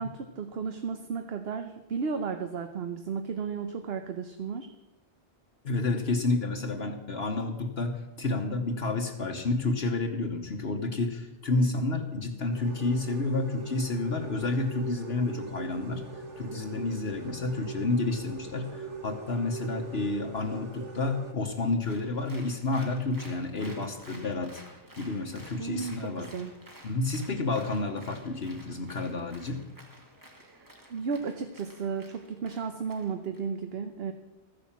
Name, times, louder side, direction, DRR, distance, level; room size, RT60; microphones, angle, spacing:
voice 1, 0.0-4.7 25.6-26.5 30.4-34.1, right 5 dB, 60° right, 7 dB, 1.1 m, -34 dB
voice 2, 5.6-16.0 16.4-24.6 25.0-26.3 26.8-29.6, left 3 dB, 65° left, 3 dB, 1.4 m, -30 dB
sound 1, 12.5-21.3, right 5 dB, 90° right, 2.0 m, -42 dB
Applause, 21.8-33.4, right 1 dB, 15° right, 1.9 m, -52 dB
14.0 x 10.0 x 7.2 m, 1.0 s
omnidirectional pair, 1.2 m